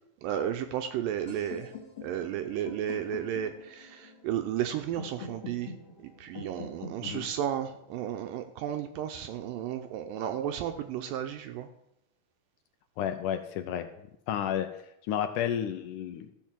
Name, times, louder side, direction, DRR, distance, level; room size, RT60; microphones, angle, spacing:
voice 1, 0.2-1.7 2.0-5.7 6.0-11.7, right 10 dB, 80° right, 7 dB, 2.2 m, -33 dB
sound 1, 1.3-9.2, left 4 dB, 40° left, 2.5 m, -46 dB
voice 2, 13.0-13.9 14.3-14.7 15.1-16.3, left 9 dB, 85° left, 8 dB, 1.8 m, -31 dB
13.5 x 5.1 x 7.4 m, 0.79 s
omnidirectional pair, 4.3 m